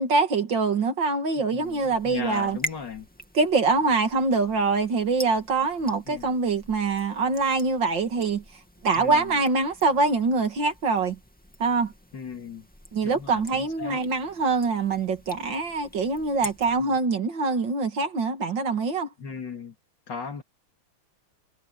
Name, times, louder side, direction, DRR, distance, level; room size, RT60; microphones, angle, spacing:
voice 1, 0.0-2.6 3.3-8.4 8.8-11.2 11.6-11.9 12.9-19.1, right 4 dB, 55° right, 2.6 m, -24 dB
voice 2, 1.4-3.1 6.1-6.3 8.9-9.4 12.1-12.7 13.0-14.0 16.8-17.0 19.2-19.7 20.1-20.4, left 5 dB, 55° left, 3.0 m, -37 dB
sound 1, 1.6-16.8, left 1 dB, 5° left, 2.3 m, -44 dB
omnidirectional pair, 2.4 m